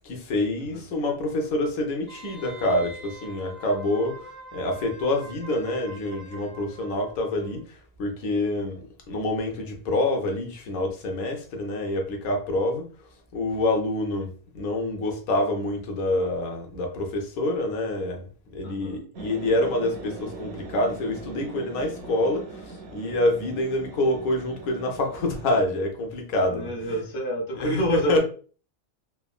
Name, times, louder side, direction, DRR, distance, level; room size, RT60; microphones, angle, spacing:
voice 1, 0.0-4.2 4.5-12.9 13.3-26.9 27.6-28.2, left 1 dB, 90° left, 1.2 m, -27 dB
Wind instrument woodwind instrument, 2.1-7.6 7.9-8.0, right 2 dB, 25° left, 1.0 m, -45 dB
voice 2, 18.6-19.0 26.4-28.2, equal, 70° left, 1.2 m, -28 dB
sound 1, 19.1-25.6, right 3 dB, 60° right, 0.7 m, -41 dB
3.4 x 2.1 x 2.3 m
omnidirectional pair, 1.5 m